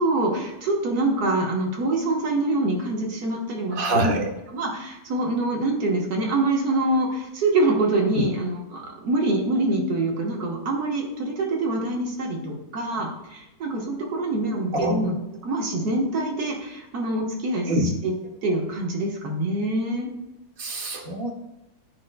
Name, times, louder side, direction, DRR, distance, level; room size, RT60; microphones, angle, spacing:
voice 1, 0.0-4.2 4.5-15.1 15.4-18.1 18.4-20.1, right 2 dB, 85° right, -1 dB, 1.9 m, -25 dB
voice 2, 3.7-4.3 14.7-15.1 17.7-18.0 20.6-21.3, right 1 dB, 65° right, 0 dB, 1.5 m, -25 dB
9.3 x 5.3 x 2.2 m, 0.94 s
omnidirectional pair, 1.6 m